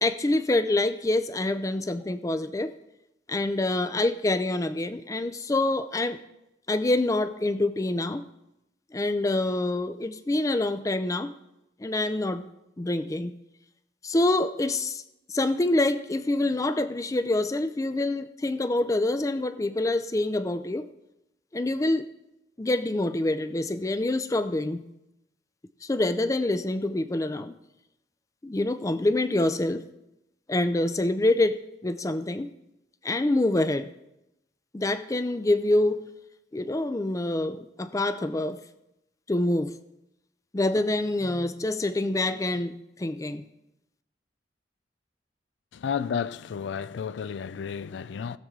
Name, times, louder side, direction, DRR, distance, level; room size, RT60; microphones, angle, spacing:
voice 1, 0.0-2.7 3.3-6.2 6.7-8.2 8.9-11.3 11.8-12.4 12.8-13.3 14.0-15.0 15.3-20.9 21.5-22.1 22.6-24.8 25.8-27.5 28.4-29.8 30.5-32.5 33.0-33.9 34.7-36.0 36.5-38.6 39.3-39.7 40.5-43.4, left 2 dB, 20° left, 0.4 m, -26 dB
voice 2, 45.7-48.4, left 7 dB, 85° left, 0.4 m, -32 dB
18.5 x 7.0 x 3.7 m
head